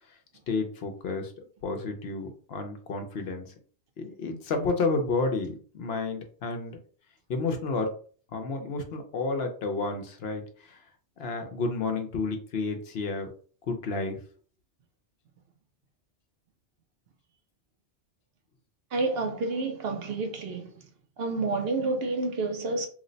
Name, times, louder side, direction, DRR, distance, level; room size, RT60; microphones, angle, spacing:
voice 1, 0.5-3.5 4.0-6.8 7.3-7.9 8.3-10.8 11.2-13.3 13.7-14.2, left 3 dB, 65° left, 0.9 m, -31 dB
voice 2, 18.9-20.7 21.2-22.9, right 3 dB, 65° right, 0.8 m, -29 dB
3.1 x 2.1 x 3.9 m
omnidirectional pair, 1.2 m